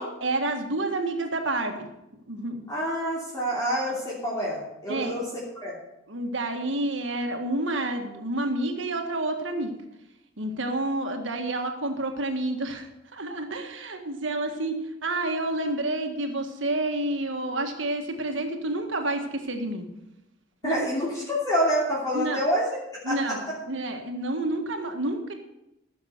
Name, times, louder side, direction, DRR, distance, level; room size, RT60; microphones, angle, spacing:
voice 1, 0.0-1.8 2.3-2.6 4.9-5.2 6.1-9.7 10.4-19.9 20.6-20.8 22.1-22.4 23.0-25.3, right 2 dB, 70° right, 4 dB, 1.7 m, -29 dB
voice 2, 2.7-5.8 20.6-22.8 23.0-23.3, equal, 20° left, -6 dB, 2.8 m, -27 dB
14.5 x 7.1 x 6.7 m, 0.90 s
head